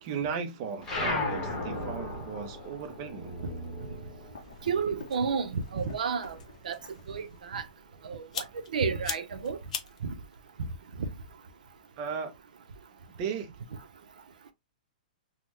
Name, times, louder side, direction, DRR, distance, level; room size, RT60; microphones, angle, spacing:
voice 1, 0.0-3.4 12.0-12.3 13.1-13.5, right 6 dB, 20° right, 0.5 m, -36 dB
sound 1, 0.8-5.7 6.0-7.4, left 2 dB, 10° left, 0.9 m, -36 dB
sound 2, 2.6-11.9, left 6 dB, 55° left, 0.6 m, -45 dB
voice 2, 4.7-6.4 6.6-6.8 7.1-7.6 8.0-8.2 8.7-9.6 10.0-10.1, right 5 dB, 70° right, 0.6 m, -30 dB
3.5 x 2.1 x 2.9 m
hypercardioid pair, 180°, 5 cm